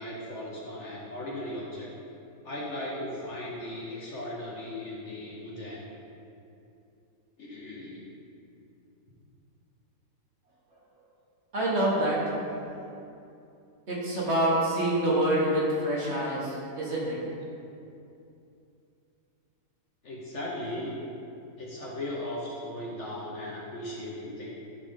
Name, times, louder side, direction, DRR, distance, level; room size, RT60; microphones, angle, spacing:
voice 1, 0.0-1.9 2.4-5.8 7.4-8.1 20.0-21.0 21.6-24.5, left 1 dB, 50° left, -4 dB, 1.1 m, -37 dB
voice 2, 11.5-12.3 13.9-17.2, right 1 dB, 45° right, -6 dB, 1.4 m, -26 dB
11.0 x 4.2 x 3.6 m, 2.7 s
omnidirectional pair, 1.7 m